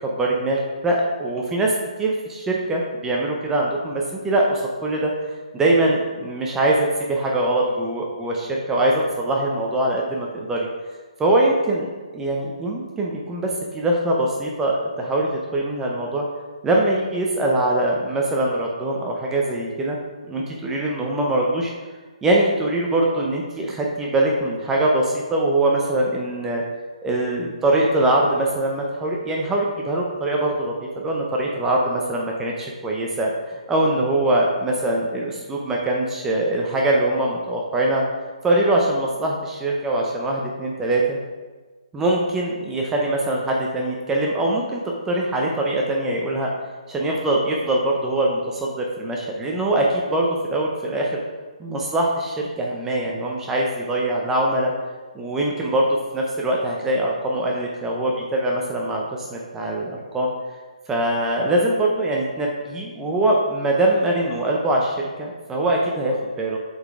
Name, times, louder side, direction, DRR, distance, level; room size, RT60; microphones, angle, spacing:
voice 1, 0.0-1.7 2.0-5.1 5.5-10.7 11.2-11.9 12.1-16.2 16.6-20.0 20.3-21.7 22.2-26.6 27.0-33.3 33.7-38.0 38.4-41.2 41.9-44.8 45.1-46.5 46.9-51.2 51.6-54.7 55.1-60.3 60.9-66.6, right 1 dB, 10° right, -2 dB, 0.6 m, -22 dB
8.0 x 4.0 x 3.6 m, 1.4 s
hypercardioid pair, 155°, 4 cm